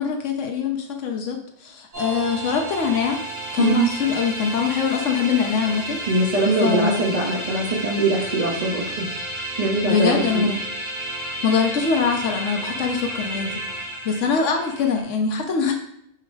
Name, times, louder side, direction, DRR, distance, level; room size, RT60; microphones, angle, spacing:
voice 1, 0.0-3.2 3.5-6.0 6.6-7.1 9.8-10.6 11.4-13.6 14.0-15.7, left 6 dB, 70° left, 3 dB, 1.0 m, -23 dB
sound 1, 1.9-15.0, right 1 dB, 70° right, 2.2 m, -32 dB
voice 2, 3.6-3.9 6.1-9.1 9.6-10.5, right 2 dB, 45° right, -3 dB, 0.5 m, -22 dB
4.6 x 2.0 x 4.6 m, 0.71 s
omnidirectional pair, 1.4 m